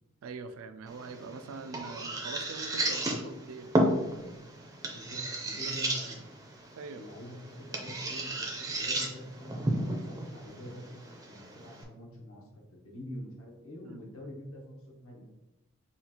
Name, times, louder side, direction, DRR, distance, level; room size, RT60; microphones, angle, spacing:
voice 1, 0.2-3.9 5.7-5.8 6.8-7.0 13.8-14.1, right 4 dB, 75° right, 10 dB, 0.3 m, -43 dB
sound 1, 0.9-11.8, right 1 dB, 15° right, 0.5 m, -34 dB
voice 2, 4.9-6.2 6.9-15.3, equal, 80° left, -1 dB, 1.1 m, -45 dB
5.6 x 2.4 x 2.9 m, 1.0 s
head